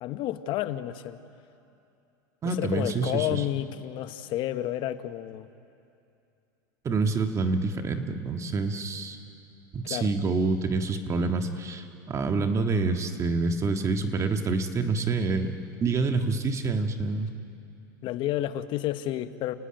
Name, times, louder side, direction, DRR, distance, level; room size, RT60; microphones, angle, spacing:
voice 1, 0.0-1.2 2.4-5.5 9.8-10.1 18.0-19.5, left 13 dB, 50° left, 11 dB, 1.2 m, -30 dB
voice 2, 2.4-3.4 6.8-9.2 9.7-15.5 15.8-17.3, right 3 dB, 30° right, 6 dB, 1.8 m, -27 dB
29.5 x 18.5 x 9.0 m, 2.7 s
supercardioid pair, 115°, 11 cm